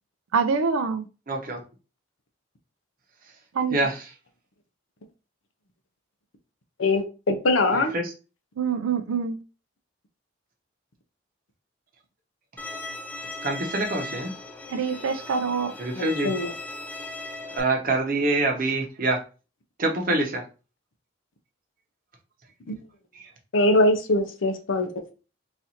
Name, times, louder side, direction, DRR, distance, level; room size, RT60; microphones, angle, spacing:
voice 1, 0.3-1.0 3.5-3.8 8.6-9.4 14.7-15.7, right 5 dB, 90° right, 0.4 m, -25 dB
voice 2, 1.3-1.6 3.7-4.0 7.7-8.1 13.4-14.3 15.8-16.3 17.5-19.2 19.8-20.4 23.1-23.3, right 2 dB, 45° right, 0.8 m, -25 dB
voice 3, 6.8-7.9 15.9-16.5 22.7-22.8 23.5-24.9, left 2 dB, 75° left, 0.7 m, -22 dB
Bowed string instrument, 12.6-17.6, left 2 dB, 10° left, 0.3 m, -38 dB
4.0 x 2.6 x 2.8 m
head